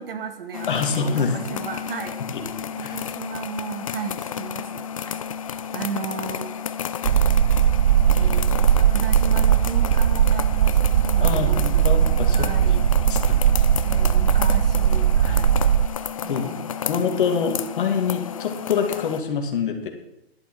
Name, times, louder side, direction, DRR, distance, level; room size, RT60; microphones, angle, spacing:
voice 1, 0.0-6.6 8.1-12.0 12.3-12.9 13.8-15.6 16.2-16.7, right 5 dB, 60° right, 7 dB, 1.9 m, -35 dB
sound 1, 0.5-19.2, left 8 dB, 35° left, 0.4 m, -32 dB
voice 2, 0.7-1.4 2.3-2.4 2.8-3.1 11.2-12.7 13.1-13.4 15.2-15.4 16.3-16.5 16.8-19.9, left 6 dB, 55° left, 4 dB, 2.1 m, -25 dB
sound 2, 7.0-15.9, right 9 dB, 85° right, 0.5 m, -19 dB
11.0 x 11.0 x 4.6 m, 0.83 s
hypercardioid pair, 155°, 32 cm